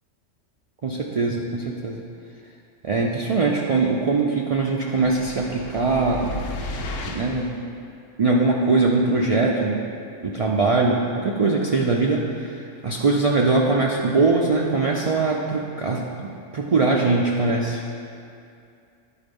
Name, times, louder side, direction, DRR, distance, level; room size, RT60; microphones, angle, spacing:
voice 1, 0.8-2.0 2.8-6.3 7.1-7.5 8.2-9.8 10.2-12.6 12.8-17.8, right 3 dB, 50° right, -1 dB, 0.4 m, -21 dB
sound 1, 4.9-7.5, left 2 dB, 80° left, 1.0 m, -33 dB
10.0 x 4.3 x 5.3 m, 2.5 s
omnidirectional pair, 1.3 m